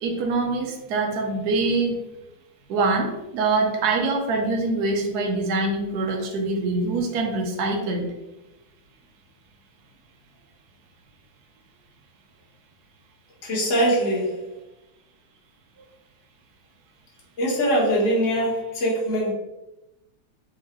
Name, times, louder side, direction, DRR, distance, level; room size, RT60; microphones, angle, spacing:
voice 1, 0.0-2.0 2.7-8.1, right 3 dB, 65° right, 2 dB, 1.0 m, -24 dB
voice 2, 13.4-14.6 17.4-19.3, equal, 40° left, -6 dB, 1.4 m, -22 dB
3.7 x 3.6 x 3.1 m, 0.96 s
omnidirectional pair, 2.3 m